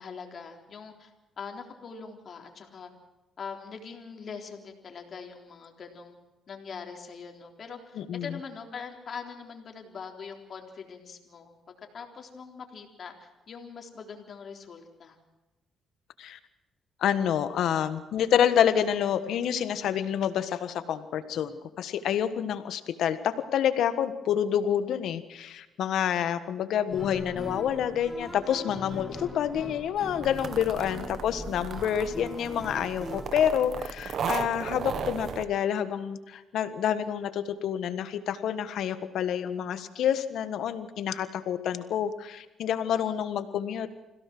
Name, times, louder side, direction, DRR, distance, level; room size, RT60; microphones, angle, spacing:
voice 1, 0.0-2.9 3.4-6.2 6.5-11.5 11.9-15.2 30.7-30.8 42.9-43.2, left 5 dB, 50° left, 3 dB, 3.6 m, -42 dB
voice 2, 8.0-8.4 16.2-16.4 17.0-43.9, left 9 dB, 75° left, 11 dB, 1.5 m, -28 dB
sound 1, 26.9-33.3, equal, ahead, 2.3 m, -41 dB
sound 2, 30.2-35.4, right 7 dB, 60° right, 1.3 m, -36 dB
26.5 x 16.5 x 6.1 m, 1.0 s
cardioid pair, 90°, 0 cm